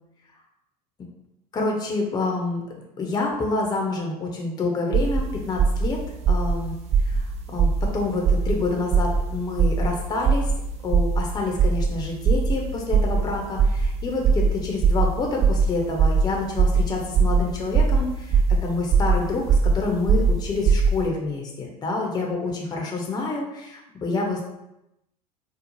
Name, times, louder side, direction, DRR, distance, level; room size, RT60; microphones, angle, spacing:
voice 1, 1.5-2.6 3.0-6.0 6.3-6.8 7.1-7.2 7.5-10.5 10.8-24.4, left 3 dB, 20° left, 0 dB, 0.5 m, -27 dB
sound 1, 4.9-5.2 5.6-5.9 6.2-6.6 6.9-7.2 7.6-7.9 8.2-8.5 8.9-9.2 9.6-9.9 10.2-10.6 10.9-11.2 11.6-11.9 12.2-12.5 12.9-13.2 13.6-13.9 14.2-14.5 14.8-15.1 15.4-15.7 16.0-16.2 16.6-16.8 17.1-17.4 17.7-18.0 18.3-18.6 18.9-19.2 19.5-19.7 20.1-20.3 20.6-20.9, right 6 dB, 30° right, 0.4 m, -19 dB
2.6 x 2.0 x 2.9 m, 0.88 s
figure-of-eight pair, 75°, 21 cm